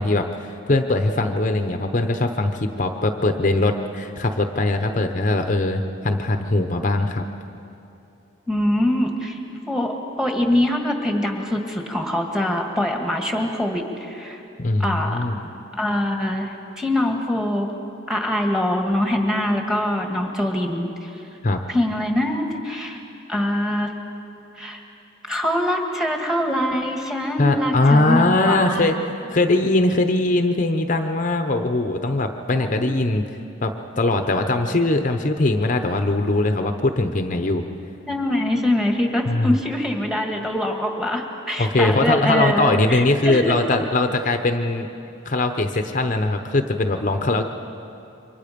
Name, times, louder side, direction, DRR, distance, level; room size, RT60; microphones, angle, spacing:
voice 1, 0.0-7.3 14.6-15.4 21.4-21.6 27.4-33.2 33.6-37.6 39.3-39.6 41.6-44.9 45.2-47.4, left 2 dB, 40° left, 6 dB, 0.8 m, -21 dB
voice 2, 8.5-14.4 14.8-15.2 15.8-17.7 18.1-21.2 21.7-23.0 23.3-23.9 24.6-24.8 25.3-28.9 32.6-32.9 38.1-43.5, left 1 dB, 5° right, 2 dB, 1.9 m, -23 dB
28.0 x 24.0 x 5.3 m, 2.8 s
head